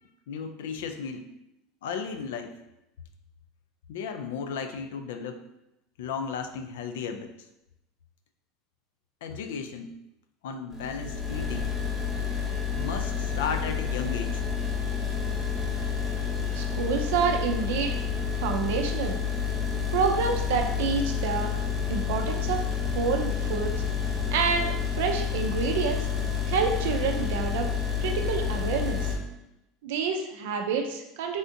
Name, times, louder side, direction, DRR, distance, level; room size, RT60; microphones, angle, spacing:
voice 1, 0.3-1.3 1.8-2.6 3.9-5.4 6.0-7.3 9.2-10.0 10.4-11.7 12.8-14.4, left 6 dB, 90° left, 7 dB, 0.3 m, -34 dB
sound 1, 10.7-29.1, left 7 dB, 10° left, 0.8 m, -29 dB
voice 2, 16.5-17.9 18.4-19.2 19.9-21.5 21.9-22.6 22.9-23.7 24.3-26.1 26.5-27.7 28.0-29.1 29.8-31.4, right 5 dB, 80° right, 3 dB, 0.4 m, -28 dB
3.4 x 2.5 x 2.6 m, 0.87 s
supercardioid pair, 145°, 0 cm